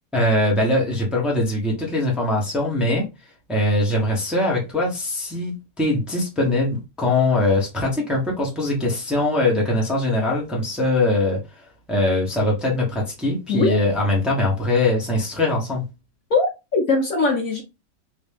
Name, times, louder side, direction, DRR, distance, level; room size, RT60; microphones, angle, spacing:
voice 1, 0.1-3.1 3.5-15.8, left 2 dB, ahead, 1.0 m, -22 dB
voice 2, 13.5-13.8 16.3-17.6, left 3 dB, 60° left, 1.2 m, -21 dB
3.2 x 2.8 x 3.4 m
omnidirectional pair, 1.9 m